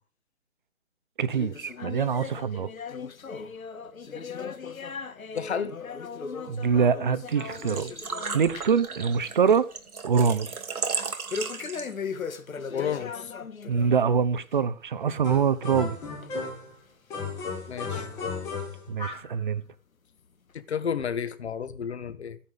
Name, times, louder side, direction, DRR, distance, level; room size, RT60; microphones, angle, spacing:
voice 1, 1.2-2.7 6.5-7.9 8.3-9.7 10.0-10.5 13.7-16.0 18.9-19.6, right 6 dB, 35° right, 0.8 m, -24 dB
sound 1, 1.3-8.9 9.2-9.5 9.9-10.0 11.3-14.0 14.4-14.6 15.2-15.3 16.2-16.3 17.1-17.2, left 5 dB, 70° left, 1.6 m, -38 dB
voice 2, 5.3-5.7 12.7-13.3 17.7-18.1 20.5-22.4, left 7 dB, 50° left, 1.5 m, -31 dB
Engine / Trickle dribble / Fill (with liquid), 7.3-12.2, right 4 dB, 85° right, 2.1 m, -35 dB
sound 2, 15.2-16.7 17.1-19.3, left 4 dB, 5° left, 1.2 m, -35 dB
14.0 x 9.9 x 5.2 m
hypercardioid pair, 155°, 43 cm